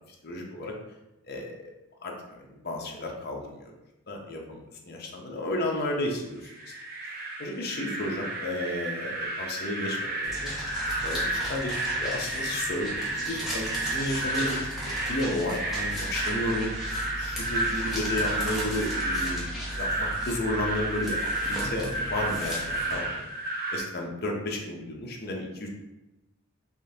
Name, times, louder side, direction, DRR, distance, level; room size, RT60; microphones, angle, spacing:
voice 1, 0.2-0.7 1.3-1.7 2.0-3.7 4.1-6.7 7.4-10.5 11.0-14.7 15.0-16.7 17.2-19.5 19.8-21.2 21.5-23.2 23.7-25.7, left 1 dB, 45° left, 0 dB, 0.6 m, -33 dB
sound 1, 6.4-23.8, right 1 dB, 40° right, 0.8 m, -32 dB
sound 2, 10.2-23.0, equal, ahead, 0.7 m, -37 dB
3.6 x 3.3 x 2.7 m, 0.98 s
head